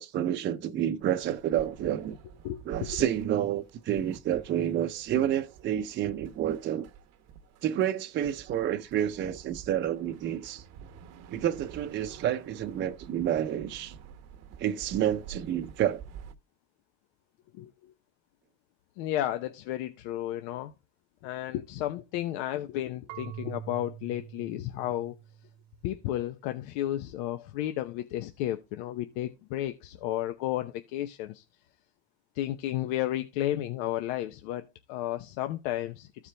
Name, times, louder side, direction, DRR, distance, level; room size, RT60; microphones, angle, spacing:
voice 1, 0.0-2.2 2.7-6.9 7.6-10.6 11.3-14.0 14.6-16.0, right 11 dB, 35° right, 0.7 m, -29 dB
sound 1, 1.0-16.3, right 7 dB, 55° right, 1.0 m, -49 dB
voice 2, 2.4-3.0 17.5-17.9 19.0-20.7 21.2-25.1 25.8-31.4 32.3-36.1, left 13 dB, 85° left, 0.8 m, -33 dB
Marimba xylophone / Wood, 23.1-25.9, right 10 dB, 90° right, 1.4 m, -45 dB
14.0 x 4.8 x 3.3 m
cardioid pair, 140°, 31 cm